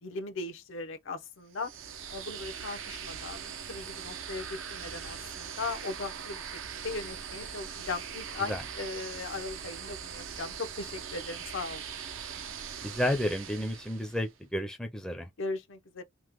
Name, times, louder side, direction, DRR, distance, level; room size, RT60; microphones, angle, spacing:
voice 1, 0.0-1.7 2.1-6.5 6.8-11.8 15.4-16.0, left 3 dB, 85° left, 0.7 m, -38 dB
sound 1, 1.5-14.3, right 7 dB, 85° right, 0.6 m, -41 dB
voice 2, 12.8-15.3, equal, 5° left, 0.4 m, -31 dB
3.0 x 2.1 x 3.4 m
head